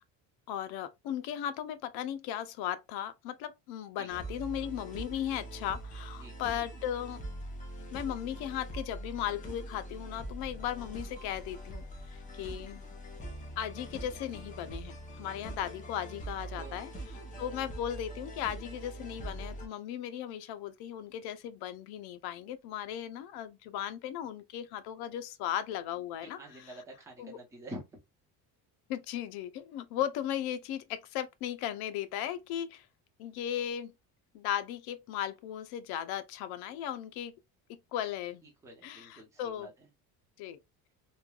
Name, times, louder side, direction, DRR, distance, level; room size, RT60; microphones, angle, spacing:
voice 1, 0.5-7.2 7.9-12.8 13.6-16.9 17.4-26.8 27.2-27.4 28.9-32.9 33.2-33.9 34.3-37.3 37.7-38.4 38.8-39.7 40.4-40.6, left 10 dB, 90° left, 0.6 m, -37 dB
sound 1, 4.1-19.7, right 1 dB, 20° left, 0.6 m, -43 dB
voice 2, 26.2-28.0 38.4-39.7, right 1 dB, 10° right, 0.8 m, -47 dB
3.2 x 2.2 x 2.3 m
cardioid pair, 165°, 37 cm